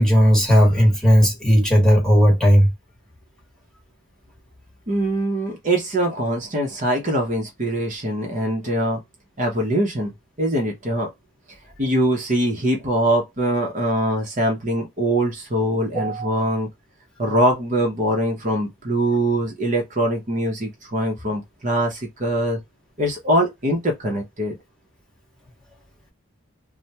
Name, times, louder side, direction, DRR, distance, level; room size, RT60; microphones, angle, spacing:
voice 1, 0.0-2.7 15.9-16.3, equal, 5° left, 1.1 m, -15 dB
voice 2, 4.9-9.0 9.4-10.1 10.4-11.1 11.8-16.7 17.2-22.6 23.0-24.6, right 1 dB, 40° right, 0.7 m, -23 dB
3.2 x 2.1 x 2.8 m
head